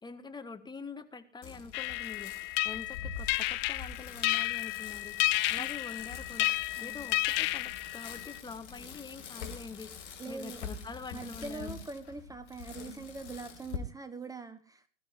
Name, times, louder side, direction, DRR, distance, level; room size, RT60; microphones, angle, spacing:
voice 1, 0.0-6.5 6.8-11.7, left 4 dB, 10° left, 1.4 m, -45 dB
Bicycle, 1.4-13.8, left 6 dB, 65° left, 3.0 m, -45 dB
sound 1, 1.7-8.4, left 20 dB, 30° left, 0.6 m, -32 dB
voice 2, 6.8-7.1 10.2-10.6 11.1-14.8, right 4 dB, 10° right, 1.3 m, -43 dB
21.5 x 13.0 x 2.8 m
figure-of-eight pair, 100°, 38 cm